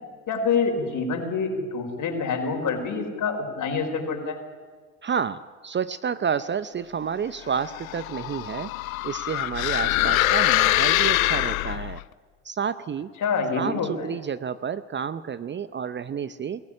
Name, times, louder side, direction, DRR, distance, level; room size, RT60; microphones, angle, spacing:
voice 1, 0.3-4.4 13.2-14.1, left 5 dB, 50° left, 5 dB, 4.7 m, -26 dB
voice 2, 5.0-8.7 9.0-12.0 12.4-13.1 13.5-16.6, right 7 dB, 30° right, 15 dB, 0.7 m, -30 dB
sound 1, 7.6-12.0, left 17 dB, 90° left, 0.6 m, -24 dB
22.0 x 15.0 x 9.9 m, 1.5 s
hypercardioid pair, 75°, 40 cm